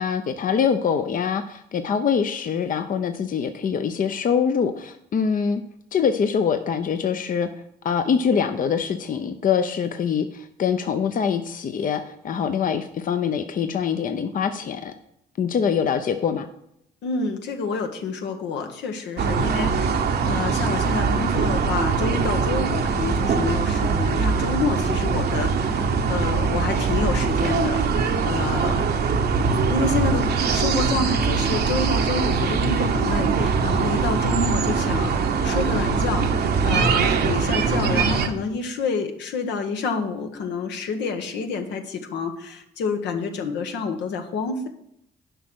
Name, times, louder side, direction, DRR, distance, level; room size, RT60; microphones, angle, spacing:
voice 1, 0.0-5.6 5.9-7.5 7.8-14.9 15.4-16.5, left 7 dB, 50° left, 8 dB, 0.6 m, -24 dB
voice 2, 17.0-28.8 29.7-44.7, left 4 dB, 80° left, 5 dB, 1.1 m, -28 dB
sound 1, 19.2-38.3, right 5 dB, 65° right, 0.9 m, -22 dB
7.9 x 5.2 x 6.2 m, 0.76 s
cardioid pair, 75°, 18 cm